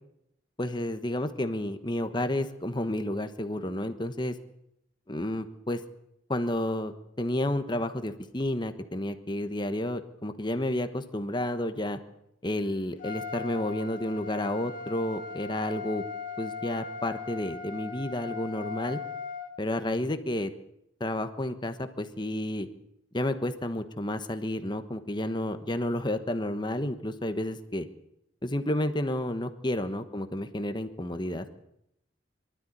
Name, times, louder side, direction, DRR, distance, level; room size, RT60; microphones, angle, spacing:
voice 1, 0.6-4.3 5.1-5.8 6.3-12.0 12.4-16.0 16.4-19.0 19.6-20.5 21.0-22.7 23.1-27.9 28.4-31.5, left 1 dB, 25° left, 9 dB, 1.2 m, -31 dB
Trumpet, 13.0-19.5, left 5 dB, 45° left, 2.1 m, -39 dB
23.5 x 13.0 x 9.8 m, 0.80 s
head